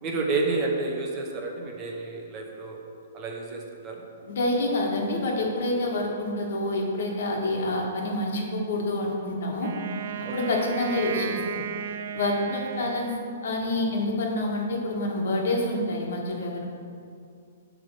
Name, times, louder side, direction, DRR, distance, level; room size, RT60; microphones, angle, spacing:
voice 1, 0.0-2.8 3.1-4.0 5.9-6.0 10.3-10.7, right 3 dB, 20° right, 0 dB, 0.7 m, -30 dB
voice 2, 4.2-9.7 10.3-11.6 12.1-16.7, left 1 dB, 60° left, 0 dB, 1.4 m, -27 dB
Wind instrument woodwind instrument, 9.6-13.8, right 8 dB, 45° right, 0.4 m, -35 dB
8.5 x 3.4 x 6.2 m, 2.4 s
hypercardioid pair, 165°, 0 cm